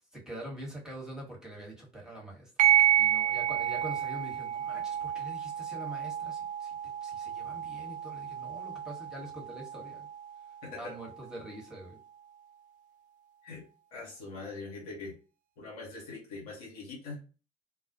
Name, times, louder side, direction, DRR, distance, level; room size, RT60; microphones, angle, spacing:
voice 1, 0.1-2.7 3.0-10.1 10.7-12.0, right 1 dB, 5° right, -3 dB, 1.2 m, -44 dB
sound 1, 2.6-11.6, right 10 dB, 45° right, 0.4 m, -30 dB
voice 2, 10.6-10.9 13.4-13.6 13.9-15.2 15.6-17.2, left 3 dB, 70° left, -3 dB, 1.0 m, -42 dB
2.4 x 2.2 x 2.6 m, 0.34 s
figure-of-eight pair, 55°, 19 cm